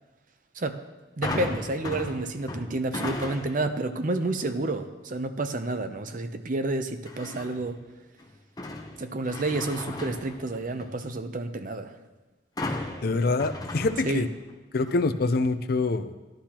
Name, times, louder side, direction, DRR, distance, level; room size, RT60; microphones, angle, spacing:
Shovel onto Flat Bed Truck Tray Ute, 1.2-3.7 4.2-4.6 7.1-7.7 8.2-11.0 12.6-14.5 14.9-15.0, left 2 dB, 20° left, 0.8 m, -36 dB
voice 1, 1.2-7.8 9.0-11.9 14.0-14.3, right 2 dB, 45° right, 9 dB, 0.6 m, -30 dB
voice 2, 13.0-14.3 14.7-16.1, left 3 dB, 55° left, 11 dB, 0.5 m, -25 dB
13.0 x 11.5 x 2.9 m, 1.1 s
head